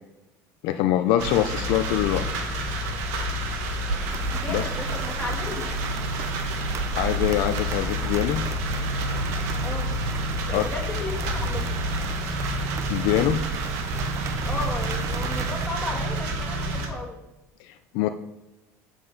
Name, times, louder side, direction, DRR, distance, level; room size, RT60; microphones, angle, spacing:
voice 1, 0.6-2.2 4.5-4.6 7.0-8.4 10.5-10.6 12.9-13.4 17.6-18.1, left 12 dB, 75° left, 8 dB, 0.6 m, -24 dB
sound 1, 1.2-16.9, right 1 dB, 80° right, 1.8 m, -28 dB
sound 2, 4.1-15.7, right 7 dB, 40° right, 0.6 m, -36 dB
voice 2, 4.3-5.7 9.6-9.9 10.5-11.8 14.4-17.2, left 2 dB, 15° left, -1 dB, 2.9 m, -34 dB
9.5 x 7.4 x 4.1 m, 0.97 s
supercardioid pair, 110°, 8 cm